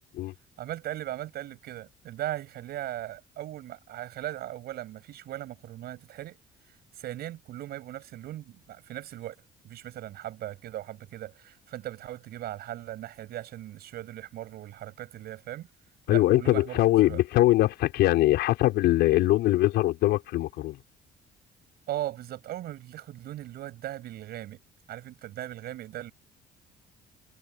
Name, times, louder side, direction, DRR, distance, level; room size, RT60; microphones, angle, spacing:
voice 1, 0.6-6.4 6.7-9.3 9.6-15.7 16.1-17.2 21.9-24.6 24.9-26.1, right 13 dB, 70° right, 6.8 m, -38 dB
voice 2, 16.1-20.8, left 16 dB, 80° left, 5.3 m, -22 dB
cardioid pair, 110°, 17 cm